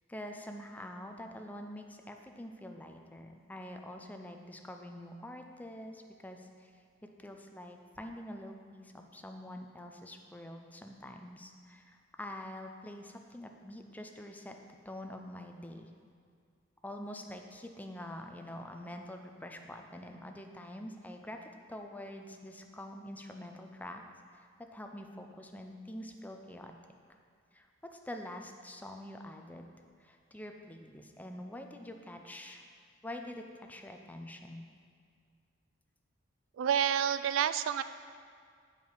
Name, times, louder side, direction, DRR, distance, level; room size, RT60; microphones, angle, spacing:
voice 1, 0.1-6.7 7.0-16.0 16.8-24.0 24.3-26.7 27.5-29.7 30.0-32.7 33.0-34.7, left 1 dB, 10° left, 4 dB, 0.4 m, -46 dB
voice 2, 36.6-37.8, right 9 dB, 85° right, 14 dB, 0.3 m, -29 dB
8.4 x 4.8 x 5.4 m, 2.1 s
head